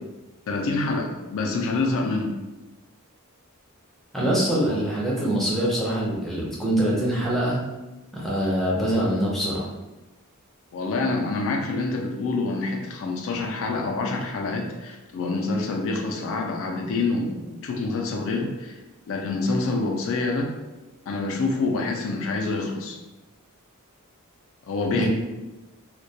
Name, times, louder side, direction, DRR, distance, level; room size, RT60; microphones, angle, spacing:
voice 1, 0.5-2.3 4.7-4.8 10.7-18.8 19.1-20.5 21.1-23.0 24.7-25.1, left 3 dB, 65° left, 2 dB, 0.4 m, -26 dB
voice 2, 4.1-7.6 8.1-9.7 24.9-25.1, right 1 dB, ahead, -5 dB, 0.5 m, -24 dB
2.2 x 2.1 x 2.7 m, 1.1 s
head